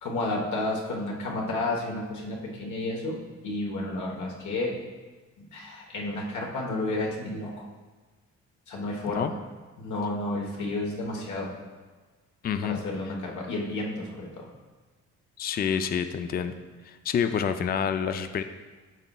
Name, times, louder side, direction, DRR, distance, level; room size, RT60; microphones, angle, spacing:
voice 1, 0.0-4.8 5.5-7.7 8.7-9.3 9.8-11.5 12.6-14.5, left 2 dB, 75° left, -1 dB, 1.1 m, -31 dB
voice 2, 12.4-12.8 15.4-16.5 16.9-18.4, left 7 dB, 30° left, 9 dB, 0.4 m, -28 dB
11.0 x 4.0 x 2.3 m, 1.3 s
cardioid pair, 90°, 30 cm